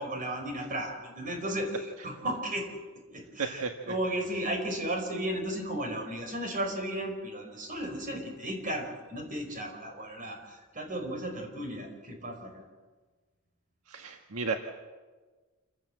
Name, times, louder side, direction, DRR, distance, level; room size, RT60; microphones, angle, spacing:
voice 1, 0.0-2.7 3.1-12.6, right 1 dB, 40° right, 3 dB, 5.0 m, -35 dB
voice 2, 3.4-3.9 13.9-14.6, right 4 dB, 75° right, 4 dB, 1.5 m, -33 dB
27.5 x 16.0 x 7.9 m, 1.3 s
head